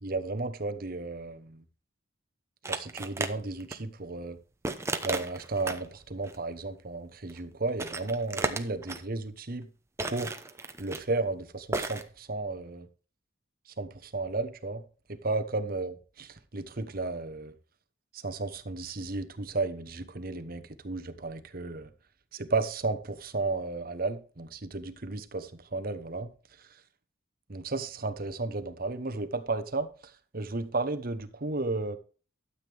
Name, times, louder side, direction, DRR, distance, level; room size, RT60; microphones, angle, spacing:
voice 1, 0.0-1.6 2.7-4.4 5.0-9.7 10.1-10.3 10.8-12.9 13.8-14.8 15.1-17.5 18.1-21.9 22.3-26.3 27.5-32.0, right 3 dB, 45° right, 1.0 m, -33 dB
sound 1, 2.6-3.3 3.6-3.8 4.6-5.9 6.2-6.4 7.3-7.4 7.7-9.0 10.0-11.0 11.7-12.0, right 2 dB, 15° right, 0.8 m, -33 dB
12.5 x 7.8 x 3.4 m
head